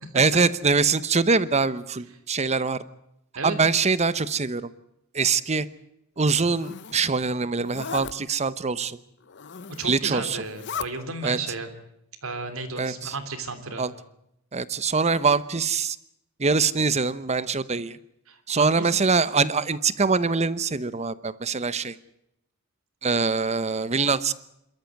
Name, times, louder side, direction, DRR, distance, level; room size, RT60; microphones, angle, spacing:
voice 1, 0.1-2.8 3.4-4.7 5.1-5.7 6.2-9.0 9.8-10.4 11.2-11.4 12.8-13.1 13.8-13.9 14.5-16.0 16.4-18.0 18.5-21.9 23.0-24.3, right 4 dB, 30° right, 16 dB, 0.9 m, -23 dB
Zipper (clothing), 6.2-7.0 7.6-8.1 9.2-10.0 10.4-10.9, left 6 dB, 55° left, 0.8 m, -37 dB
voice 2, 9.8-11.7 12.2-13.8 18.3-18.9, right 3 dB, 75° right, 8 dB, 3.2 m, -33 dB
27.5 x 13.5 x 9.4 m, 0.81 s
head